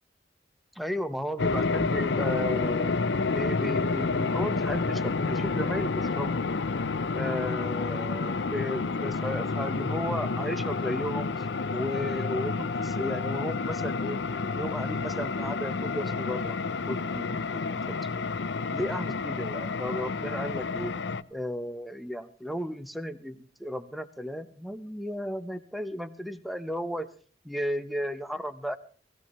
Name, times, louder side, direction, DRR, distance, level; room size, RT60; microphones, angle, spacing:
voice 1, 0.7-2.9 3.3-6.4 7.1-11.3 11.7-14.2 14.5-16.6 16.9-17.2 17.5-18.0 18.7-20.9 21.3-27.1 27.4-28.8, equal, ahead, 9 dB, 0.9 m, -34 dB
sound 1, 1.4-21.2, left 4 dB, 80° left, 0.6 m, -29 dB
17.0 x 16.5 x 3.2 m, 0.42 s
head